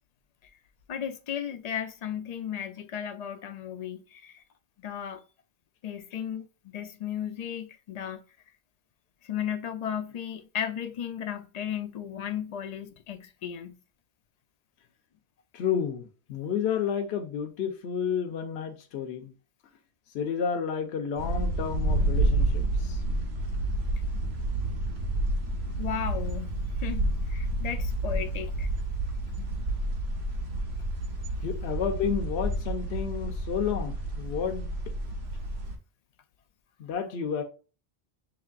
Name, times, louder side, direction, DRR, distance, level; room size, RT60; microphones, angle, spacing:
voice 1, 0.9-4.4 4.8-5.2 5.8-8.2 9.2-13.8 25.8-28.7, left 9 dB, 60° left, 0.4 m, -35 dB
voice 2, 15.5-19.3 20.1-23.0 31.4-34.7 36.8-37.4, left 7 dB, 75° left, 0.9 m, -31 dB
sound 1, 21.2-35.7, right 1 dB, 75° right, 1.2 m, -29 dB
5.9 x 2.9 x 2.4 m
omnidirectional pair, 1.1 m